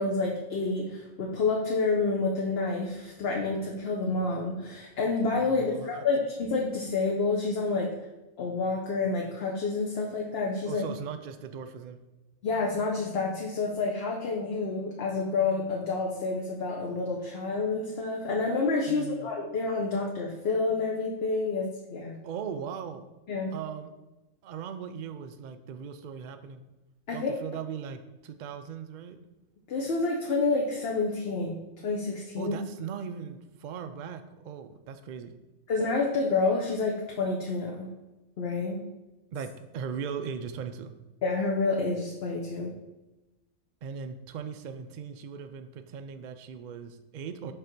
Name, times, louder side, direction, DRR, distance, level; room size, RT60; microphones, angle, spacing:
voice 1, 0.0-7.9 8.4-10.8 12.4-22.2 23.3-23.5 27.1-27.3 29.7-32.5 35.7-37.9 38.4-38.8 41.2-42.7, left 3 dB, 55° left, -1 dB, 1.0 m, -29 dB
voice 2, 5.4-6.0 10.6-12.0 18.9-19.3 22.2-23.0 23.5-23.9 24.4-26.6 27.1-29.2 32.4-35.3 39.3-41.0 43.8-47.5, right 7 dB, 65° right, 8 dB, 0.4 m, -39 dB
5.6 x 3.7 x 5.9 m, 1.0 s
omnidirectional pair, 1.4 m